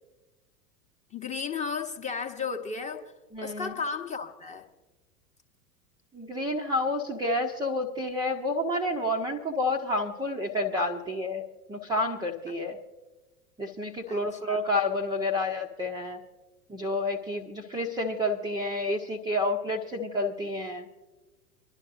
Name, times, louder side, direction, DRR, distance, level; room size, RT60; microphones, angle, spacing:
voice 1, 1.1-3.0 3.4-4.6 14.1-14.6, left 5 dB, 15° left, 5 dB, 1.0 m, -34 dB
voice 2, 3.3-3.7 6.1-11.4 11.7-12.8 13.6-16.2 16.7-20.8, left 1 dB, 10° right, 0 dB, 0.7 m, -29 dB
27.5 x 11.5 x 2.6 m, 1.1 s
figure-of-eight pair, 90°, 46 cm